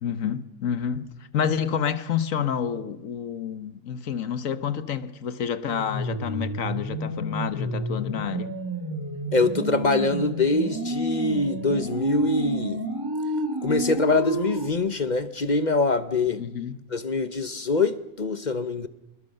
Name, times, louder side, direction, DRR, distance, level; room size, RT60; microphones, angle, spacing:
voice 1, 0.0-8.5 16.3-16.8, left 8 dB, 65° left, 1.4 m, -29 dB
sound 1, 5.7-14.7, right 1 dB, 15° right, 1.8 m, -30 dB
voice 2, 9.3-12.8 13.6-16.4 16.9-18.9, left 3 dB, 35° left, 0.9 m, -24 dB
26.5 x 21.0 x 6.6 m
omnidirectional pair, 1.5 m